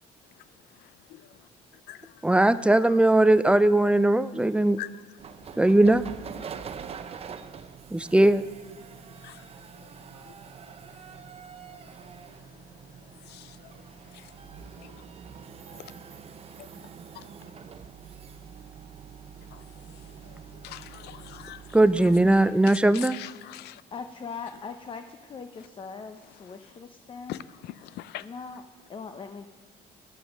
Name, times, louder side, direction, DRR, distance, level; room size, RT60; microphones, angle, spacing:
voice 1, 2.2-4.8 5.6-6.1 7.9-8.5 21.7-23.2, right 1 dB, 5° right, 0.4 m, -19 dB
sound 1, 5.2-22.5, right 7 dB, 35° right, 0.7 m, -45 dB
voice 2, 20.6-21.6 23.1-23.8 27.3-27.4 27.6-28.2, left 14 dB, 80° left, 0.5 m, -40 dB
voice 3, 23.9-27.4 28.2-28.6 28.9-29.5, left 5 dB, 30° left, 0.7 m, -40 dB
12.0 x 9.1 x 6.4 m
cardioid pair, 110°, 17 cm